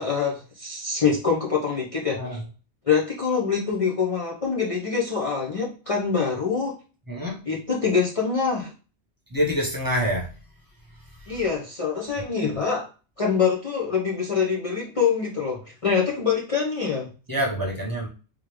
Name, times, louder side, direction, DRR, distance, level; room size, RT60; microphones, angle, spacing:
voice 1, 0.0-2.4 2.8-6.8 7.5-8.7 11.3-12.9 13.2-17.1, left 6 dB, 35° left, -4 dB, 0.7 m, -25 dB
voice 2, 7.1-7.4 9.3-10.3 11.2-11.4 17.3-18.1, equal, 20° right, -2 dB, 1.0 m, -26 dB
3.6 x 3.2 x 3.3 m, 0.35 s
omnidirectional pair, 1.1 m